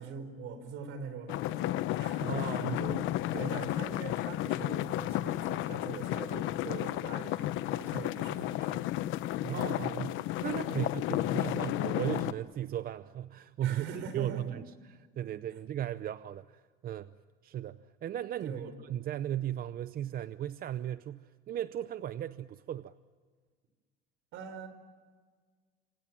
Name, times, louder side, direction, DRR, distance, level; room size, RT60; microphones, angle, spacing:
voice 1, 0.0-8.9 10.7-10.9 13.6-14.5 18.4-18.7 24.3-24.7, right 5 dB, 75° right, 10 dB, 4.9 m, -43 dB
sound 1, 1.3-12.3, left 14 dB, 70° left, 1.0 m, -33 dB
voice 2, 2.3-2.8 9.4-14.6 15.2-17.1 17.4-22.9, right 11 dB, 45° right, 14 dB, 0.7 m, -36 dB
26.5 x 26.0 x 7.5 m, 1.5 s
cardioid pair, 115°, 21 cm